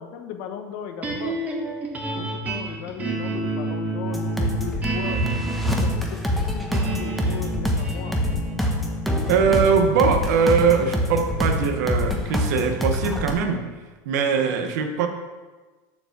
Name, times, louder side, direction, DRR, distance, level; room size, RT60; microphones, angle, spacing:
voice 1, 0.0-1.4 2.2-5.2 5.8-8.2, left 8 dB, 65° left, 6 dB, 1.1 m, -37 dB
sound 1, 1.0-13.3, right 2 dB, 15° right, 1.3 m, -31 dB
sound 2, 4.1-13.3, left 1 dB, ahead, 1.0 m, -25 dB
voice 2, 9.3-13.7 14.0-15.1, right 6 dB, 80° right, 6 dB, 1.1 m, -21 dB
7.2 x 5.2 x 6.6 m, 1.3 s
supercardioid pair, 150°, 9 cm